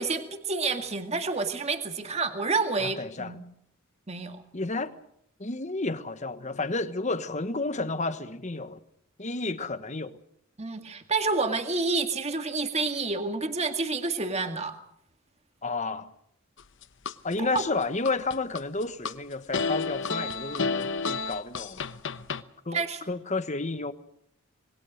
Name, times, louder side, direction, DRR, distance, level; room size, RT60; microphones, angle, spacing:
voice 1, 0.0-3.4 4.1-4.4 10.6-14.8 17.4-17.6 22.7-23.0, right 3 dB, 30° right, 2.0 m, -29 dB
voice 2, 2.8-3.3 4.5-4.9 5.4-8.8 9.2-10.2 15.6-16.1 17.2-21.8 22.6-23.9, left 3 dB, 35° left, 1.2 m, -31 dB
sound 1, 16.6-17.6 18.1-19.1 19.5-22.4, left 4 dB, 60° left, 1.0 m, -30 dB
26.5 x 21.0 x 6.4 m
head